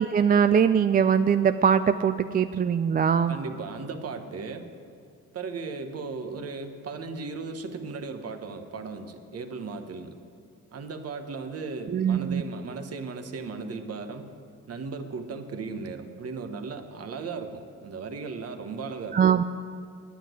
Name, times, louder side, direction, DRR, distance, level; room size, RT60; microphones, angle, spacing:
voice 1, 0.0-3.4 11.9-12.4 19.1-19.4, right 7 dB, 30° right, 10 dB, 0.4 m, -22 dB
voice 2, 3.3-4.7 5.3-10.1 10.7-14.3 14.7-19.2, right 4 dB, 55° right, 7 dB, 1.2 m, -36 dB
10.0 x 8.2 x 9.2 m, 2.4 s
cardioid pair, 90°, 30 cm